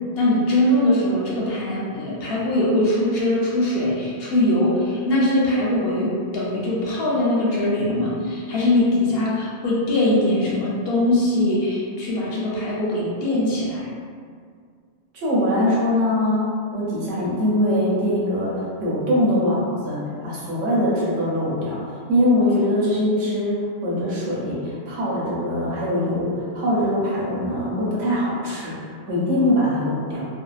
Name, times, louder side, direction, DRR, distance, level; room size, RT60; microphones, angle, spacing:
voice 1, 0.1-13.9, left 1 dB, 65° left, -6 dB, 0.7 m, -21 dB
voice 2, 15.1-30.3, left 1 dB, 85° right, -6 dB, 1.1 m, -22 dB
2.6 x 2.0 x 2.3 m, 2.1 s
omnidirectional pair, 1.2 m